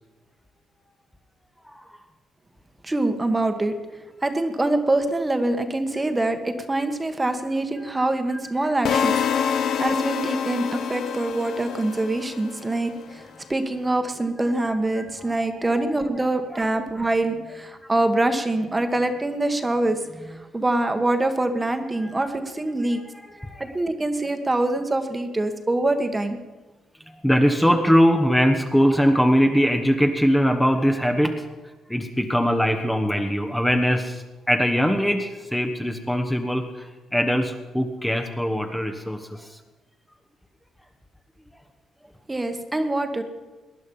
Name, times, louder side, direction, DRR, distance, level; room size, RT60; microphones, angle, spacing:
voice 1, 1.6-2.0 7.8-8.7 9.4-10.6 14.4-15.8 16.1-16.6 16.9-17.0 22.0-22.2 22.9-23.7 27.2-31.3 31.9-39.6, equal, 5° left, 4 dB, 1.2 m, -23 dB
voice 2, 2.8-3.7 4.2-13.2 13.5-23.0 23.6-26.4 42.3-43.2, right 2 dB, 20° right, 7 dB, 1.4 m, -24 dB
sound 1, 8.9-12.9, left 7 dB, 70° left, 0.8 m, -26 dB
19.0 x 11.0 x 5.5 m, 1.2 s
cardioid pair, 90°, 0 cm